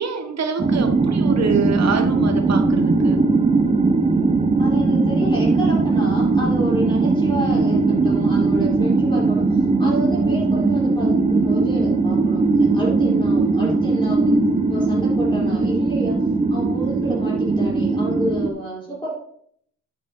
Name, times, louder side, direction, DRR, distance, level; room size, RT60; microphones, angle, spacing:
voice 1, 0.0-3.2, right 5 dB, 60° right, 5 dB, 1.4 m, -25 dB
sound 1, 0.6-18.5, right 3 dB, 20° right, 0.6 m, -19 dB
voice 2, 4.6-14.3 14.7-16.1 16.5-19.2, equal, 15° left, -7 dB, 3.3 m, -30 dB
9.5 x 5.3 x 4.3 m, 0.64 s
wide cardioid pair, 140°, 30 cm